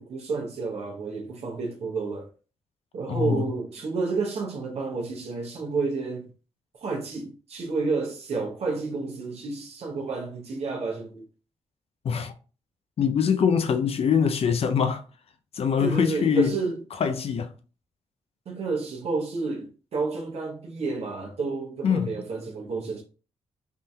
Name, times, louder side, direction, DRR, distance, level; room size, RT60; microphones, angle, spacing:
voice 1, 0.0-2.3 2.9-6.3 6.8-11.3 15.8-16.8 18.5-23.0, right 4 dB, 60° right, 0.8 m, -30 dB
voice 2, 3.1-3.5 12.0-12.3 13.0-15.0 15.5-16.6 17.0-17.5 21.8-22.2, left 7 dB, 55° left, 0.5 m, -23 dB
3.7 x 2.6 x 2.3 m
supercardioid pair, 55°, 12 cm